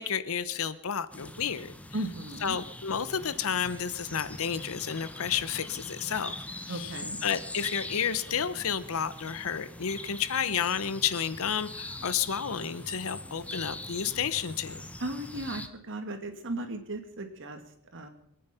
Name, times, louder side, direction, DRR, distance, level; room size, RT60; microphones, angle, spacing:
voice 1, 0.0-2.0 2.4-6.3 6.7-14.8, left 7 dB, 65° left, 15 dB, 0.8 m, -31 dB
sound 1, 1.1-15.7, left 1 dB, 5° left, 0.8 m, -42 dB
voice 2, 1.9-2.6 6.7-7.2 15.0-17.6 17.9-18.1, right 1 dB, 60° right, 6 dB, 2.2 m, -36 dB
23.5 x 9.5 x 5.6 m, 0.71 s
head